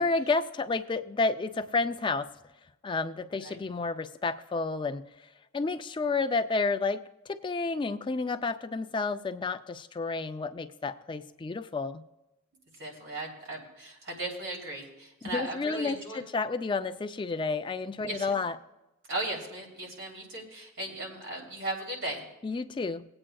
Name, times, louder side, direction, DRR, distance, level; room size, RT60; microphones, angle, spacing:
voice 1, 0.0-2.3 2.8-5.0 5.5-12.0 15.3-18.6 22.4-23.1, left 3 dB, 25° left, 9 dB, 0.3 m, -30 dB
voice 2, 12.8-16.2 18.0-18.4 19.1-22.2, right 2 dB, 60° right, 0 dB, 2.9 m, -37 dB
20.0 x 8.7 x 2.3 m, 0.97 s
head